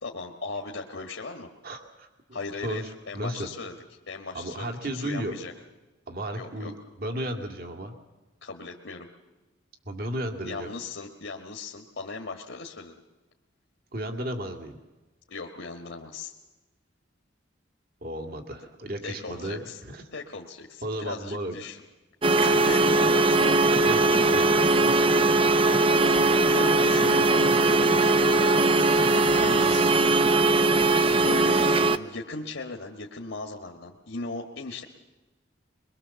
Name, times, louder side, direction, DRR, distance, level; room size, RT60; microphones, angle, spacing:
voice 1, 0.0-1.5 2.3-3.7 4.1-5.5 6.3-6.7 8.4-9.1 10.4-13.0 15.3-16.3 19.0-19.8 20.1-21.8 22.4-24.2 25.2-27.6 29.0-29.9 31.2-34.8, left 3 dB, 65° left, 1 dB, 1.6 m, -38 dB
voice 2, 1.6-3.5 4.3-5.3 6.1-8.0 9.8-10.7 13.9-14.8 18.0-20.0 20.8-21.6 23.8-24.5, right 1 dB, 50° right, 5 dB, 2.3 m, -34 dB
sound 1, 22.2-32.0, right 2 dB, 30° right, 0.7 m, -20 dB
23.0 x 22.5 x 7.0 m, 1.1 s
head